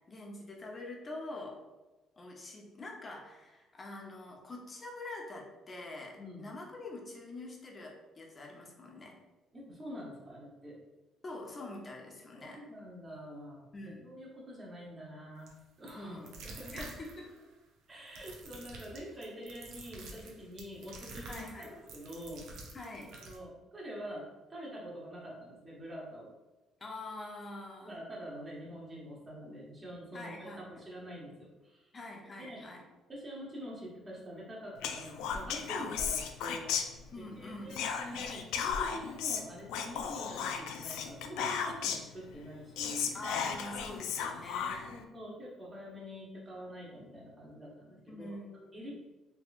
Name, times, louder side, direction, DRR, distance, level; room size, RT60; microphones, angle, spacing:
voice 1, 0.1-1.6 2.2-9.2 11.2-12.6 13.7-14.1 16.0-16.3 16.7-17.3 21.3-21.7 22.7-23.1 26.8-27.9 30.1-30.8 31.9-32.8 37.1-37.8 43.1-45.0 48.1-48.9, left 2 dB, 30° left, 0 dB, 0.7 m, -45 dB
voice 2, 6.1-6.5 9.5-10.8 12.4-13.7 14.0-15.5 15.8-16.2 16.4-16.9 17.9-22.4 23.1-26.3 27.8-31.9 32.4-32.6 33.1-36.8 37.2-43.2 44.6-48.4 48.7-48.9, equal, 25° right, -4 dB, 1.2 m, -46 dB
sound 1, 15.5-15.6 15.9-16.0 16.3-17.4 18.1-23.4, right 3 dB, 80° right, 0.7 m, -48 dB
Whispering, 34.8-37.3 37.7-42.1 42.5-42.6 42.8-45.0, left 7 dB, 90° left, 0.3 m, -35 dB
3.6 x 3.0 x 2.5 m, 1.1 s
cardioid pair, 110°, 0 cm